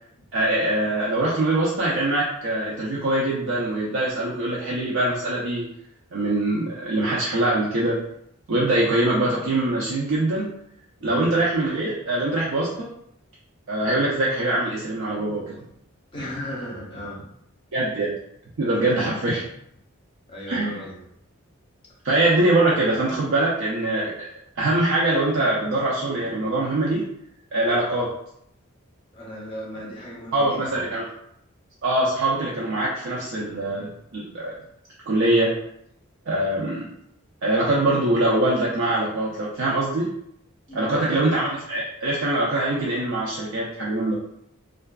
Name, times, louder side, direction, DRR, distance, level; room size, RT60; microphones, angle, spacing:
voice 1, 0.3-5.6 6.1-8.0 8.5-10.5 11.0-12.9 13.7-15.6 17.7-18.1 18.6-19.4 20.5-20.8 22.0-24.3 24.6-27.0 27.5-28.1 30.3-31.1 31.8-34.5 35.1-35.5 36.3-36.9 37.4-40.1 40.7-44.2, right 2 dB, 55° right, -5 dB, 0.4 m, -23 dB
voice 2, 11.0-11.3 16.1-17.2 18.9-19.2 20.3-21.0 29.1-31.0 40.7-41.3, equal, 25° left, -5 dB, 0.6 m, -35 dB
2.4 x 2.2 x 2.2 m, 0.73 s
head